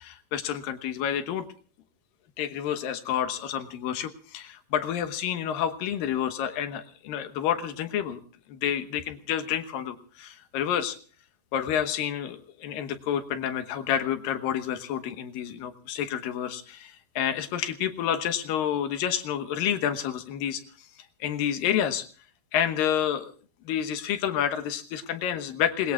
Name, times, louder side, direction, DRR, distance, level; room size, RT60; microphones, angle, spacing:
voice 1, 0.0-1.5 2.4-8.2 8.5-11.0 11.5-20.6 21.2-22.0 22.5-23.3 23.7-25.9, left 9 dB, 80° left, 9 dB, 2.9 m, -29 dB
28.5 x 20.5 x 2.4 m, 0.42 s
omnidirectional pair, 4.0 m